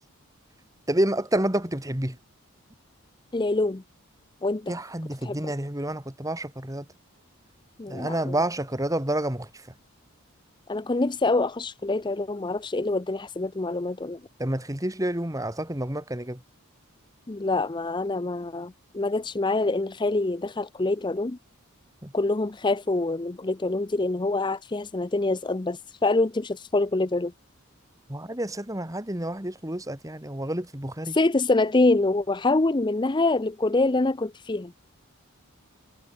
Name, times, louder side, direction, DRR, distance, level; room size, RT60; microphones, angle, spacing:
voice 1, 0.9-2.2 4.7-6.8 7.9-9.5 14.4-16.4 22.0-22.1 28.1-31.2, right 1 dB, 15° right, 2.5 m, -29 dB
voice 2, 3.3-3.8 4.4-4.7 5.2-5.5 7.8-8.3 10.7-14.2 17.3-21.4 22.1-27.3 31.1-34.9, left 2 dB, 20° left, 0.5 m, -25 dB
head